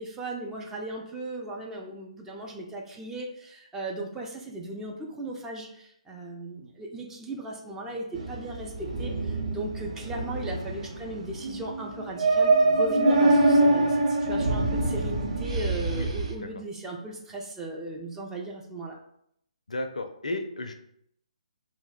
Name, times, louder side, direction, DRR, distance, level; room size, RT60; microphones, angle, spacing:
voice 1, 0.0-19.0, right 2 dB, 10° right, -1 dB, 0.3 m, -37 dB
sound 1, 8.1-16.3, right 2 dB, 55° right, 0.8 m, -25 dB
voice 2, 19.7-20.7, left 1 dB, 70° left, 7 dB, 0.4 m, -33 dB
2.6 x 2.0 x 3.8 m, 0.71 s
figure-of-eight pair, 135°, 4 cm